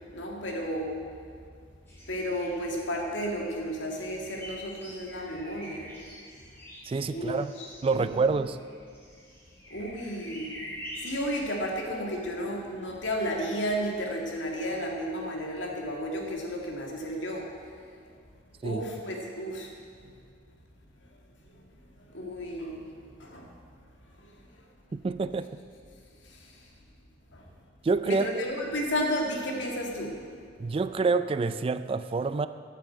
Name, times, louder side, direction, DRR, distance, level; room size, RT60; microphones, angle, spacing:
voice 1, 0.1-1.0 2.1-5.9 7.1-8.3 9.7-10.6 10.9-17.5 18.6-19.7 20.0-20.2 22.1-23.5 26.2-26.7 27.3-27.4 28.0-30.2, equal, 80° left, 0 dB, 2.1 m, -33 dB
sound 1, 1.9-3.0 3.3-11.4, equal, 15° left, 3.7 m, -46 dB
voice 2, 6.9-7.5 7.8-8.6 18.6-18.8 24.9-25.5 27.8-28.3 30.6-32.5, right 4 dB, 30° right, 12 dB, 0.3 m, -27 dB
9.1 x 8.2 x 8.6 m, 2.1 s
head